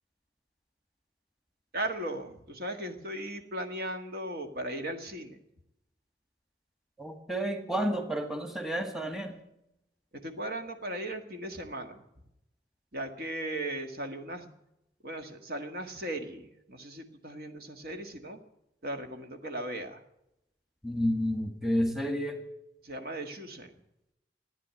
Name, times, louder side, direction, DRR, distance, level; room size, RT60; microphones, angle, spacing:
voice 1, 1.7-5.4 10.2-12.0 12.9-14.5 15.0-18.4 18.8-20.0 22.8-23.7, right 1 dB, 55° right, 5 dB, 1.8 m, -37 dB
voice 2, 7.0-9.3 20.8-22.4, equal, ahead, 6 dB, 1.8 m, -30 dB
15.0 x 9.9 x 9.5 m, 0.84 s
head